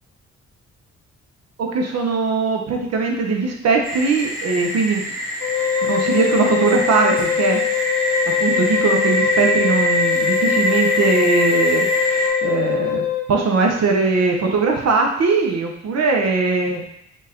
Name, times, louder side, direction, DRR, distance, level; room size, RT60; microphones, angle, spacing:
voice 1, 1.6-5.0 5.8-7.6 8.4-16.8, right 4 dB, 60° right, 1 dB, 0.8 m, -20 dB
sound 1, 3.8-12.3, equal, 30° right, 1.3 m, -24 dB
Wind instrument woodwind instrument, 5.4-13.3, left 9 dB, 75° left, 0.5 m, -22 dB
5.3 x 2.5 x 3.5 m, 0.72 s
cardioid pair, 90°, 30 cm